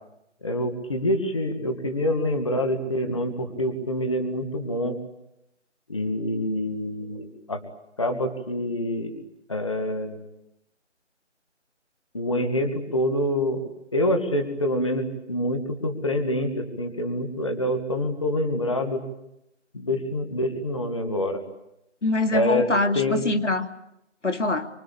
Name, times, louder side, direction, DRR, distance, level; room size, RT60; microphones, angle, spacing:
voice 1, 0.4-5.0 5.9-7.6 8.0-9.1 9.5-10.2 12.1-13.6 13.9-19.0 19.7-21.4 22.3-22.7 22.9-23.2, left 1 dB, 25° left, 6 dB, 2.0 m, -26 dB
voice 2, 22.0-23.6 24.2-24.7, left 2 dB, 80° left, 8 dB, 2.6 m, -24 dB
26.0 x 25.5 x 8.6 m, 0.83 s
figure-of-eight pair, 175°, 36 cm